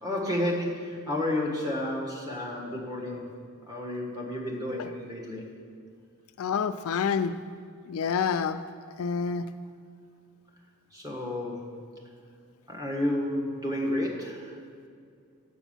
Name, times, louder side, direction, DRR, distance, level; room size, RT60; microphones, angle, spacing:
voice 1, 0.0-3.3 3.7-5.4 10.9-11.6 12.7-14.5, left 1 dB, 20° right, -2 dB, 1.4 m, -31 dB
voice 2, 6.4-7.3 7.9-8.6 9.0-9.5, left 6 dB, 70° left, 10 dB, 0.4 m, -27 dB
7.0 x 6.3 x 7.1 m, 2.2 s
head